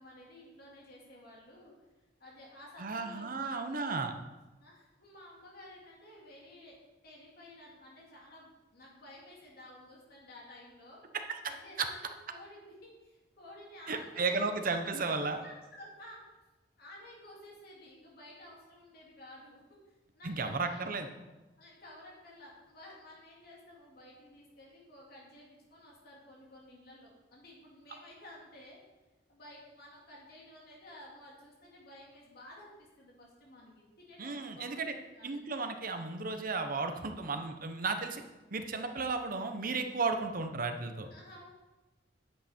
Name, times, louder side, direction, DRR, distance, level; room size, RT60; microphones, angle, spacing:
voice 1, 0.0-1.9 2.2-4.1 4.6-6.8 7.0-11.0 11.5-14.4 15.4-16.2 16.8-21.0 21.6-28.8 29.3-35.4 37.1-37.4 41.1-41.5, left 1 dB, 60° left, -4 dB, 2.5 m, -53 dB
voice 2, 2.8-4.1 11.3-11.4 11.8-11.9 13.9-15.4 20.2-21.1 34.2-34.9 35.2-38.2 38.5-41.1, right 4 dB, 50° right, 7 dB, 0.9 m, -34 dB
10.0 x 7.7 x 4.4 m, 1.1 s
head